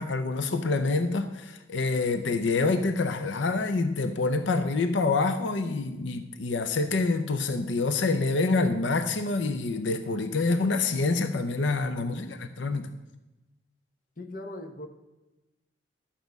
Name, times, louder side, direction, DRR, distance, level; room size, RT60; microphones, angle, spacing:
voice 1, 0.0-12.2 12.6-12.9, left 3 dB, 85° left, 9 dB, 0.6 m, -26 dB
voice 2, 12.0-12.4 14.2-14.9, left 1 dB, 45° left, 6 dB, 1.0 m, -39 dB
11.5 x 8.2 x 5.3 m, 1.0 s
head